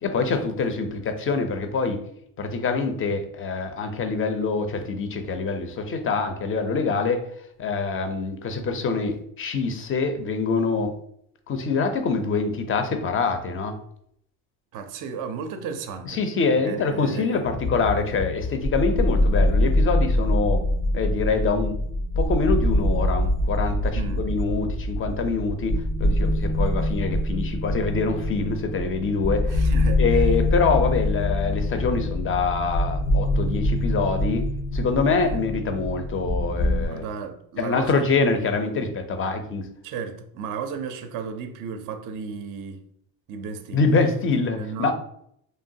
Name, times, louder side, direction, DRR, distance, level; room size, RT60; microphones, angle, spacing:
voice 1, 0.0-2.0 2.4-7.2 7.6-10.9 11.5-13.8 16.1-20.6 20.9-21.8 22.2-29.6 30.0-34.5 34.7-37.1 37.6-39.7 43.7-44.9, left 4 dB, 30° left, 0.4 m, -25 dB
voice 2, 14.7-16.2 16.5-17.4 23.9-24.3 29.5-30.3 35.2-35.4 36.9-38.1 39.8-42.8 43.3-44.0 44.5-44.9, right 6 dB, 45° right, 0.4 m, -34 dB
sound 1, 17.4-36.9, left 1 dB, 90° left, 0.8 m, -24 dB
3.0 x 2.1 x 2.6 m
supercardioid pair, 95°, 45 cm